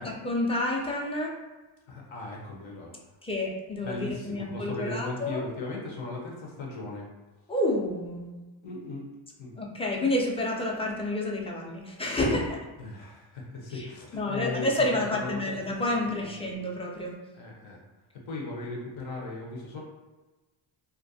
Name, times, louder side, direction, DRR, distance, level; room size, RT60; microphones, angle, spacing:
voice 1, 0.0-1.3 3.2-5.4 7.5-8.3 9.6-12.6 13.7-13.9 14.1-17.1, left 1 dB, 15° left, -1 dB, 0.5 m, -29 dB
voice 2, 1.9-3.0 3.8-7.1 8.6-9.0 9.4-9.5 12.8-15.6 15.9-16.3 17.4-17.8 18.3-19.8, left 2 dB, 75° left, -2 dB, 0.9 m, -37 dB
2.5 x 2.2 x 2.6 m, 1.2 s
cardioid pair, 80°, 47 cm